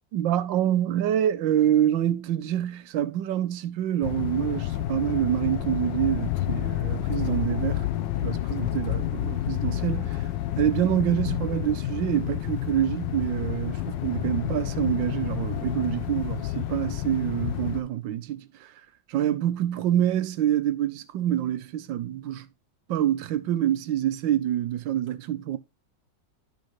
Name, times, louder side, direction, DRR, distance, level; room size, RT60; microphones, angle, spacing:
voice 1, 0.1-7.9 8.2-10.1 10.6-18.7 19.1-22.5 22.9-25.6, right 11 dB, 85° right, 1.5 m, -26 dB
sound 1, 4.0-17.8, left 13 dB, 85° left, 1.4 m, -29 dB
12.0 x 5.4 x 3.1 m
omnidirectional pair, 2.0 m